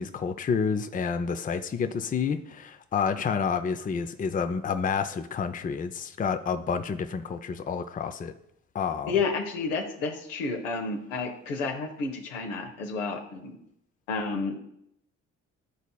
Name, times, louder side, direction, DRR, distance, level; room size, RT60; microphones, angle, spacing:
voice 1, 0.0-8.3 8.7-9.1, left 6 dB, 25° left, 0.5 m, -29 dB
voice 2, 9.1-13.5 14.1-14.6, left 4 dB, 85° left, 1.0 m, -30 dB
11.5 x 4.0 x 2.3 m
hypercardioid pair, 50°, 37 cm